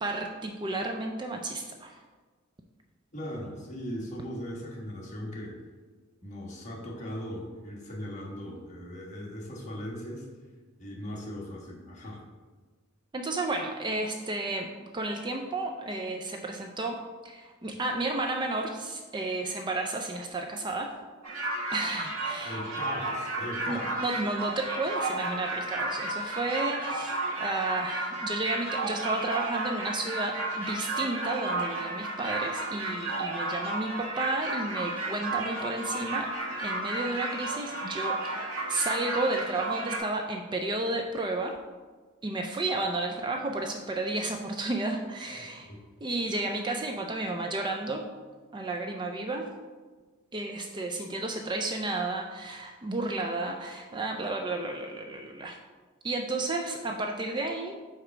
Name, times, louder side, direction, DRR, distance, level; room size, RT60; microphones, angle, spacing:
voice 1, 0.0-2.0 13.1-20.9 21.7-22.6 23.7-36.3 36.6-41.6 42.2-45.7 46.0-48.0 48.5-49.5 50.3-55.6 56.0-57.8, right 2 dB, 20° right, 3 dB, 0.4 m, -32 dB
voice 2, 3.1-5.5 6.2-10.3 10.8-12.2 22.4-24.1 45.3-45.8, equal, 35° left, -3 dB, 1.4 m, -39 dB
sound 1, 21.2-40.0, right 2 dB, 85° right, 1.6 m, -33 dB
4.9 x 4.3 x 5.9 m, 1.4 s
head